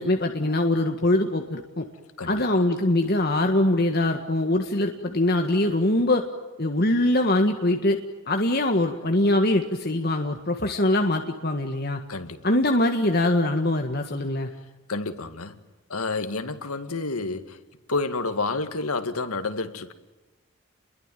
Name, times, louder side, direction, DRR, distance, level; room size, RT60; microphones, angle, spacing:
voice 1, 0.0-1.8 2.3-6.2 6.6-8.0 8.3-12.0 12.4-14.5, left 1 dB, 45° left, 1.7 m, -23 dB
voice 2, 2.2-2.6 12.1-12.5 14.9-15.6 15.9-17.6 17.9-19.9, left 3 dB, 90° left, 2.1 m, -29 dB
29.0 x 22.0 x 9.2 m
head